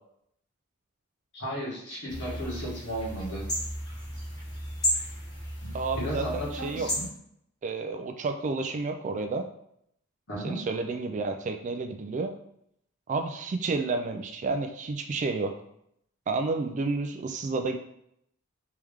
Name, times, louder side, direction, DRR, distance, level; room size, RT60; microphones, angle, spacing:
voice 1, 1.3-3.5 5.6-7.1 10.3-10.7, equal, 55° left, -5 dB, 1.6 m, -35 dB
sound 1, 2.1-7.1, equal, 20° left, 1.3 m, -33 dB
voice 2, 5.7-6.9 7.6-9.4 10.4-12.3 13.1-15.5 16.3-17.8, right 3 dB, 35° right, 6 dB, 0.3 m, -30 dB
3.4 x 3.1 x 3.5 m, 0.73 s
head